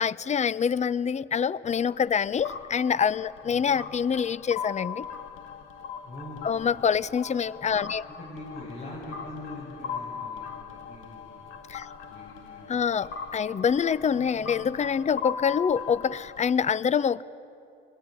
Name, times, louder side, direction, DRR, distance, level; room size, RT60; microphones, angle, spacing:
voice 1, 0.0-5.1 6.4-8.0 11.7-11.9 12.7-17.2, left 7 dB, 35° left, 19 dB, 0.6 m, -26 dB
sound 1, 1.7-16.5, left 6 dB, 85° left, 2.0 m, -39 dB
voice 2, 6.0-6.8 8.0-11.4 12.1-12.9, left 1 dB, 55° left, -5 dB, 7.5 m, -43 dB
23.5 x 20.5 x 9.7 m, 2.6 s
cardioid pair, 90°, 20 cm